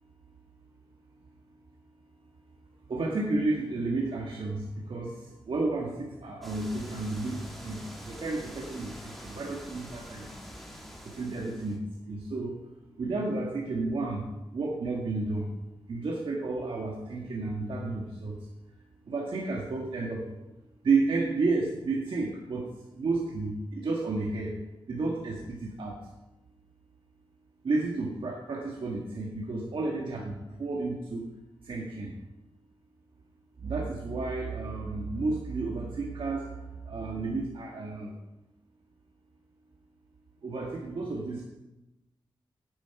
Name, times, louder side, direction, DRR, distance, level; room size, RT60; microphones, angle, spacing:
voice 1, 2.9-10.3 11.0-12.6 13.0-14.3 14.5-15.5 15.9-18.4 19.1-20.2 20.8-24.5 24.9-26.0 27.6-31.3 31.6-32.1 33.6-36.5 36.8-38.1 40.4-41.4, right 3 dB, 65° right, -2 dB, 1.5 m, -32 dB
sound 1, 6.4-11.8, equal, ahead, 2.0 m, -45 dB
9.3 x 8.7 x 5.7 m, 1.0 s
wide cardioid pair, 115°, 10 cm